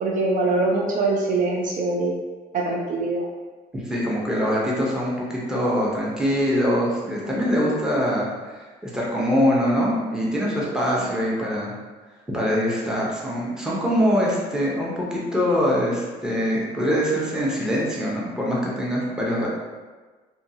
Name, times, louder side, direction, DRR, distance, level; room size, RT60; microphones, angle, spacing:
voice 1, 0.0-2.1 2.5-3.3 10.9-11.0, right 3 dB, 50° right, -2 dB, 0.4 m, -23 dB
voice 2, 3.7-11.7 12.3-19.5, equal, 5° right, -5 dB, 0.7 m, -23 dB
2.6 x 2.3 x 2.7 m, 1.3 s
cardioid pair, 110°, 17 cm